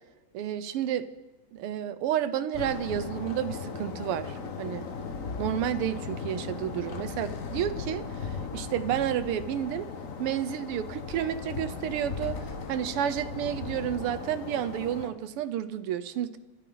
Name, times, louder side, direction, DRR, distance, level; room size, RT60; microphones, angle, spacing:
voice 1, 0.3-1.1 1.5-4.9 5.4-9.9 10.2-12.4 12.7-16.4, right 10 dB, 85° right, 13 dB, 1.8 m, -31 dB
sound 1, 2.5-15.1, left 5 dB, 45° left, 1.4 m, -37 dB
25.0 x 12.5 x 4.0 m, 1.1 s
omnidirectional pair, 2.4 m